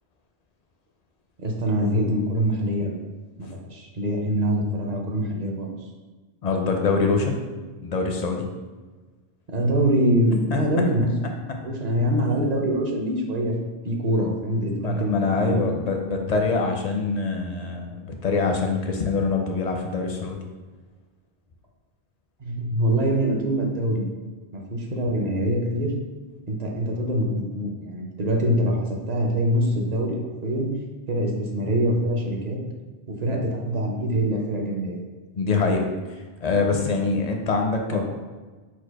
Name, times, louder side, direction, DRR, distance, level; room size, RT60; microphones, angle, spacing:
voice 1, 1.4-3.0 3.4-5.7 9.5-11.3 11.6-13.5 13.8-15.6 22.4-24.1 24.5-25.9 26.5-30.7 31.1-32.6 33.2-35.0 37.9-38.0, equal, 45° right, 1 dB, 0.7 m, -24 dB
voice 2, 6.4-7.4 7.8-8.4 10.5-10.6 14.8-20.4 35.3-38.0, left 4 dB, 55° left, 3 dB, 0.5 m, -24 dB
4.5 x 2.3 x 4.6 m, 1.3 s
omnidirectional pair, 1.0 m